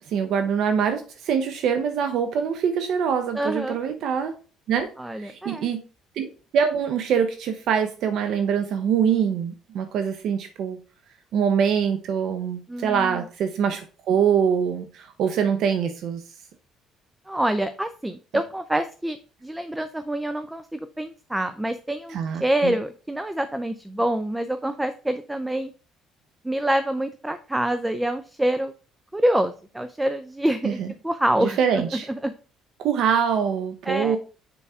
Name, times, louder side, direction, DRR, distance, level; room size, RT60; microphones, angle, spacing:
voice 1, 0.1-4.3 4.7-4.9 5.2-5.8 6.2-6.3 6.5-10.8 11.3-16.2 22.1-22.8 30.6-30.9 31.4-32.1 32.8-34.2, right 7 dB, 65° right, 7 dB, 0.7 m, -24 dB
voice 2, 3.3-3.8 5.0-5.7 12.7-13.2 17.3-25.7 26.4-28.7 29.1-31.6 32.1-32.3 33.9-34.2, right 1 dB, 5° right, 11 dB, 0.5 m, -26 dB
7.0 x 4.7 x 3.5 m, 0.38 s
cardioid pair, 120°, 0 cm